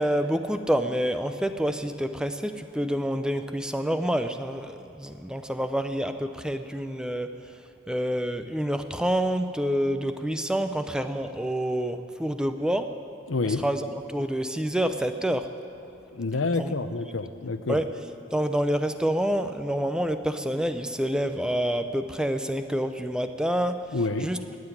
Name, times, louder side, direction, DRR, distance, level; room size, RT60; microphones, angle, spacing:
voice 1, 0.0-7.3 7.9-12.9 13.4-15.5 16.6-16.7 17.7-17.9 18.3-23.8 24.2-24.4, equal, 5° right, 9 dB, 0.4 m, -27 dB
voice 2, 13.3-13.6 16.1-17.8 23.9-24.3, left 3 dB, 85° left, 11 dB, 0.7 m, -28 dB
18.0 x 7.8 x 9.9 m, 2.7 s
head